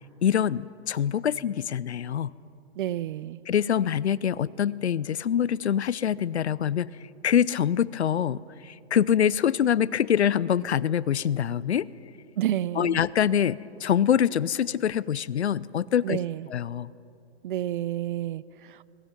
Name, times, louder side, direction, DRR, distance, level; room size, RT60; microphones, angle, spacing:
voice 1, 0.2-2.3 3.5-6.9 7.2-11.9 12.8-16.2 16.5-16.9, left 9 dB, 80° left, 21 dB, 0.7 m, -25 dB
voice 2, 2.8-3.4 12.4-13.0 16.0-16.5 17.4-18.8, right 12 dB, 50° right, 21 dB, 0.6 m, -30 dB
29.5 x 20.5 x 6.0 m, 2.7 s
hypercardioid pair, 130°, 33 cm